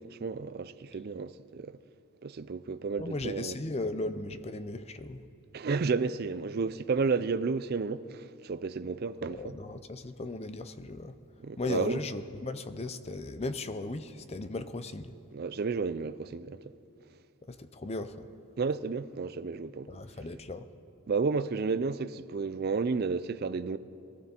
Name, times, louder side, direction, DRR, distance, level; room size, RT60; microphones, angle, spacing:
voice 1, 0.0-1.8 2.2-3.6 5.5-9.6 11.4-12.0 15.3-16.6 18.6-20.0 21.1-23.8, right 4 dB, 45° right, 0.4 m, -32 dB
voice 2, 3.0-5.2 9.4-11.1 11.6-15.1 17.5-18.3 19.9-20.7, left 2 dB, 30° left, 0.5 m, -37 dB
22.5 x 14.5 x 4.4 m
head